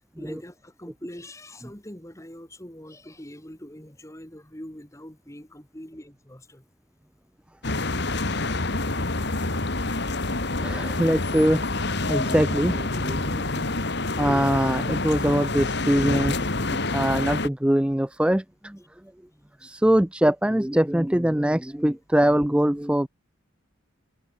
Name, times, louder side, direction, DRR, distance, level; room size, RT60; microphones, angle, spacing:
voice 1, 0.2-6.6 10.1-10.9 13.7-14.1, left 1 dB, 15° left, 2.3 m, -44 dB
sound 1, 7.6-17.5, left 2 dB, 50° left, 1.9 m, -27 dB
voice 2, 10.6-11.7 12.1-13.8 14.2-18.8 19.6-23.1, right 1 dB, 5° right, 0.4 m, -23 dB
head